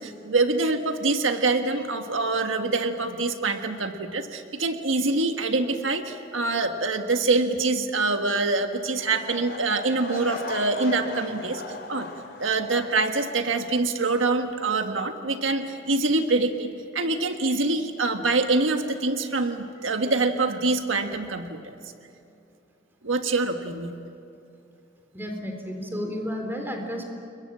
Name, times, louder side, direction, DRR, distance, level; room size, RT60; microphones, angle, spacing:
voice 1, 0.0-11.6 11.9-12.1 12.4-21.7 23.0-23.9, right 3 dB, 90° right, 6 dB, 1.5 m, -25 dB
sound 1, 9.0-14.0 14.3-14.6 15.2-15.3, left 2 dB, 60° left, 3.1 m, -38 dB
voice 2, 25.1-27.0, equal, 10° right, 3 dB, 3.8 m, -32 dB
29.5 x 22.0 x 7.4 m, 2.6 s
head